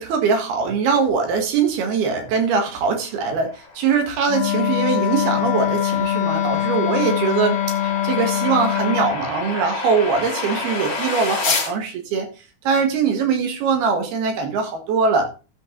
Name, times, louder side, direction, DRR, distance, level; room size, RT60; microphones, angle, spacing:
voice 1, 0.0-12.3 12.7-15.3, right 5 dB, 80° right, 4 dB, 3.7 m, -22 dB
sound 1, 3.0-11.7, left 4 dB, 40° left, 3.7 m, -30 dB
Wind instrument woodwind instrument, 4.3-9.2, left 11 dB, 65° left, 2.6 m, -23 dB
12.5 x 5.7 x 3.9 m, 0.32 s
omnidirectional pair, 4.4 m